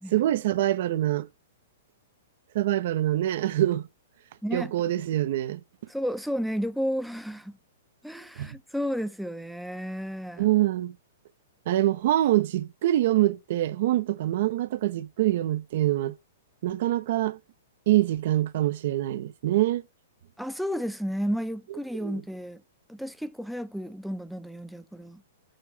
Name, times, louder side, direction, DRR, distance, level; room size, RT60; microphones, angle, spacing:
voice 1, 0.1-1.3 2.5-3.9 4.5-5.6 8.4-8.6 10.4-11.0 11.7-16.1 16.6-17.4 17.9-19.8 22.0-22.2, right 14 dB, 55° right, 0.7 m, -25 dB
voice 2, 4.4-4.7 5.9-7.6 8.0-10.5 20.4-22.6 22.9-25.2, equal, ahead, 0.6 m, -32 dB
6.5 x 3.3 x 5.6 m
figure-of-eight pair, 110°, 0 cm